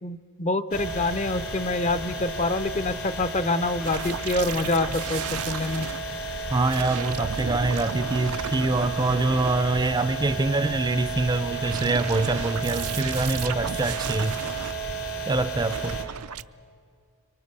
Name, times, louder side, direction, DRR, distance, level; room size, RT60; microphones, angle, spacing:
voice 1, 0.0-5.9, left 2 dB, 30° left, 13 dB, 0.6 m, -26 dB
sound 1, 0.7-16.0, right 2 dB, 65° left, 2.9 m, -33 dB
sound 2, 3.8-6.0 6.6-10.1 11.3-14.7 15.6-16.4, right 8 dB, 80° right, 0.5 m, -35 dB
voice 2, 6.5-14.4 15.3-16.0, right 2 dB, 20° right, 13 dB, 0.5 m, -25 dB
25.5 x 24.0 x 6.7 m, 2.2 s
head